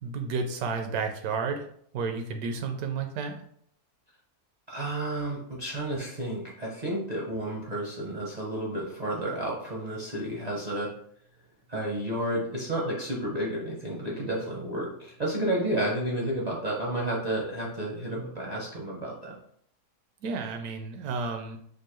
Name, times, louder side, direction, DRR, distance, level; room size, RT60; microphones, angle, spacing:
voice 1, 0.0-1.7 1.9-3.4 20.2-21.6, right 4 dB, 75° right, 5 dB, 1.0 m, -31 dB
voice 2, 4.7-10.9 11.7-19.4, right 1 dB, 40° right, -4 dB, 0.6 m, -31 dB
4.5 x 2.6 x 3.0 m, 0.65 s
omnidirectional pair, 1.6 m